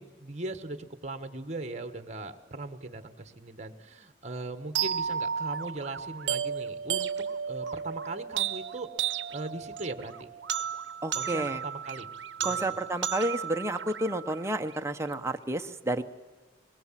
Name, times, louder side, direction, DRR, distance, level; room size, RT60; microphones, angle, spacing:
voice 1, 0.0-7.1 7.5-10.3 11.1-12.1 12.4-12.7, right 2 dB, 35° right, 9 dB, 1.5 m, -39 dB
sound 1, 4.7-14.8, right 8 dB, 75° right, 0.8 m, -33 dB
voice 2, 11.0-11.6 12.4-16.0, right 1 dB, 15° right, 6 dB, 1.0 m, -31 dB
23.0 x 22.0 x 7.6 m, 1.3 s
head